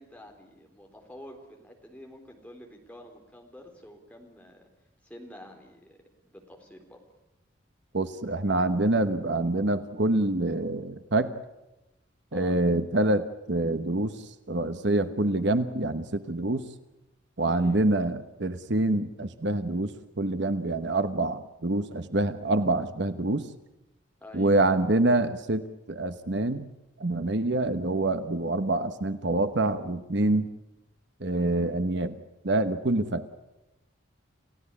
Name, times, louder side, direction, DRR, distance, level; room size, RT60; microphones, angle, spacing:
voice 1, 0.0-4.7 5.0-6.0 6.2-7.0 12.3-12.6 17.5-17.8 24.2-24.5, left 1 dB, 5° left, 2 dB, 3.8 m, -48 dB
voice 2, 7.9-11.3 12.3-14.2 14.5-16.7 17.4-23.4 24.3-26.7 27.0-30.5 31.2-32.2 32.4-33.3, right 2 dB, 60° right, 10 dB, 1.1 m, -26 dB
28.5 x 16.5 x 9.9 m, 0.95 s
head